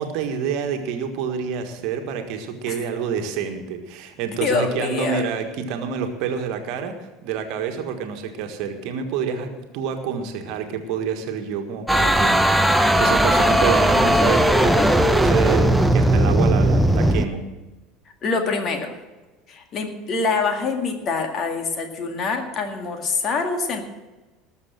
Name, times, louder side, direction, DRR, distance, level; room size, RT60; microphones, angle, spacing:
voice 1, 0.0-6.9 7.2-17.4, right 7 dB, 55° right, 5 dB, 1.6 m, -28 dB
voice 2, 4.4-5.2 18.2-18.9 19.5-23.8, left 4 dB, 40° left, 5 dB, 2.1 m, -25 dB
sound 1, 11.9-17.2, right 1 dB, 5° right, 0.8 m, -17 dB
19.5 x 6.8 x 6.2 m, 1.1 s
figure-of-eight pair, 70°, 0 cm